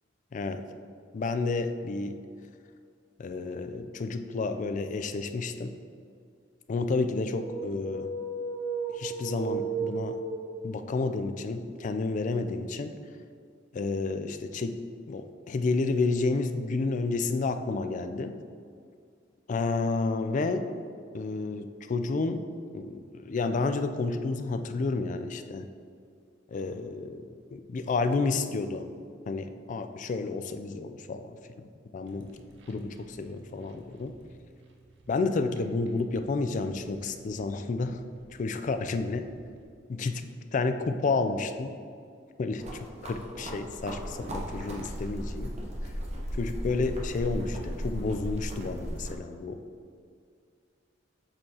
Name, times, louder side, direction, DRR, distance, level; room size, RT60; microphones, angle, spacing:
voice 1, 0.3-0.6 1.1-2.2 3.2-5.7 6.7-8.1 8.9-10.2 10.6-12.9 13.7-18.3 19.5-20.7 21.1-22.4 22.7-25.7 26.5-27.2 27.5-28.9 29.3-31.7 31.9-32.3 32.7-34.1 35.1-38.0 38.4-39.2 39.9-41.7 42.4-45.5 45.8-45.9 46.3-49.6, left 3 dB, 40° left, 8 dB, 0.3 m, -30 dB
sound 1, 7.3-10.9, right 4 dB, 5° left, 0.8 m, -34 dB
sound 2, 32.1-39.6, right 2 dB, 65° right, 0.7 m, -54 dB
sound 3, 42.6-49.2, equal, 35° right, 0.8 m, -36 dB
7.7 x 4.5 x 2.8 m, 2.3 s
head